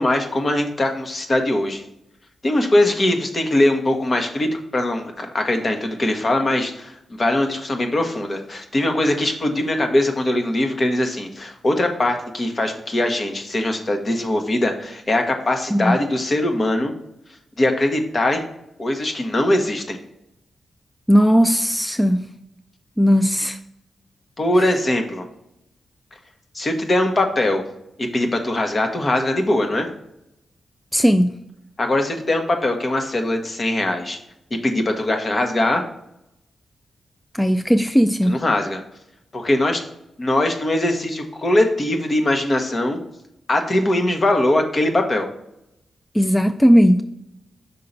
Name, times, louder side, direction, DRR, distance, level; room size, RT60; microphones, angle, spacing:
voice 1, 0.0-1.8 2.4-6.9 7.2-16.9 17.6-18.4 18.8-20.0 24.4-25.2 26.5-27.6 28.0-29.9 31.8-34.2 34.6-35.8 38.3-38.8 39.3-39.8 40.2-43.0 43.5-45.3, left 1 dB, 45° left, 1.2 m, -21 dB
voice 2, 21.1-22.3 23.0-23.6 30.9-31.4 37.3-38.4 46.1-47.0, equal, 10° left, 0.4 m, -16 dB
5.7 x 3.8 x 5.4 m
supercardioid pair, 45°, 0 cm